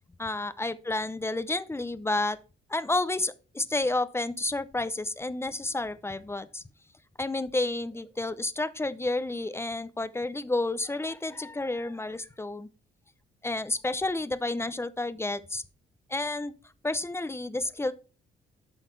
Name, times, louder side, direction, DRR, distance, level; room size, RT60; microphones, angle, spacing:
voice 1, 0.2-2.4 2.7-6.6 7.2-12.7 13.4-15.6 16.1-16.5 16.8-17.9, left 2 dB, 10° left, 0.7 m, -30 dB
12.0 x 4.0 x 4.6 m
cardioid pair, 90°, 20 cm